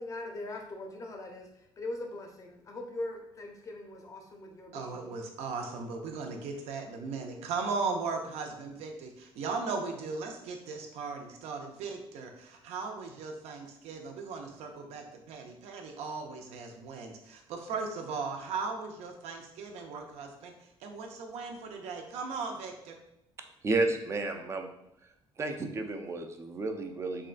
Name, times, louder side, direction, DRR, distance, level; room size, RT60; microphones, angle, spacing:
voice 1, 0.0-1.5 1.8-5.1, left 2 dB, 30° left, 2 dB, 0.5 m, -41 dB
voice 2, 4.7-20.5 20.8-23.0, right 4 dB, 80° right, 4 dB, 0.5 m, -37 dB
voice 3, 23.6-24.7 25.4-27.3, right 3 dB, 25° right, 5 dB, 0.3 m, -32 dB
3.6 x 2.2 x 2.4 m, 0.79 s
cardioid pair, 120°, 11 cm